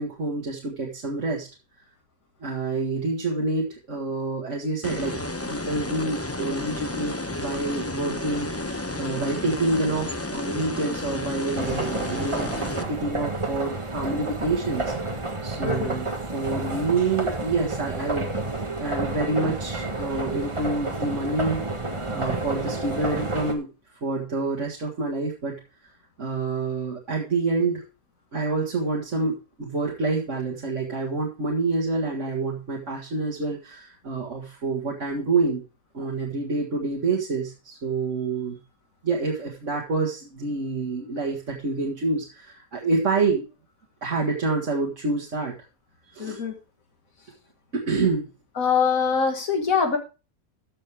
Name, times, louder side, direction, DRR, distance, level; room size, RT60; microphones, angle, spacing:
voice 1, 0.0-1.5 2.4-14.8 15.4-18.3 18.8-23.7 24.0-25.6 26.2-27.8 28.3-35.6 35.9-38.6 39.0-43.5 44.0-45.5 46.1-46.4 47.7-48.3, right 3 dB, 60° right, -2 dB, 2.1 m, -27 dB
sound 1, 4.8-12.8, left 2 dB, 15° left, 0.7 m, -32 dB
sound 2, 11.6-23.5, right 2 dB, 20° right, 1.4 m, -30 dB
voice 2, 15.6-15.9 46.2-46.5 48.6-50.0, left 6 dB, 70° left, 4 dB, 2.3 m, -23 dB
13.5 x 6.7 x 3.5 m, 0.31 s
omnidirectional pair, 1.5 m